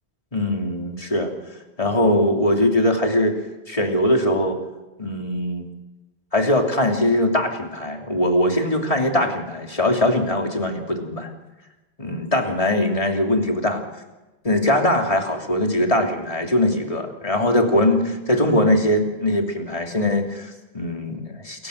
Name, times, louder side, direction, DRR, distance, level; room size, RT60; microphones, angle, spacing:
voice 1, 0.3-1.3 1.8-3.3 3.7-4.6 5.0-5.7 6.3-11.3 12.0-13.8 14.4-21.7, left 1 dB, 30° left, 2 dB, 3.0 m, -21 dB
29.5 x 15.5 x 6.5 m, 1.1 s
omnidirectional pair, 1.1 m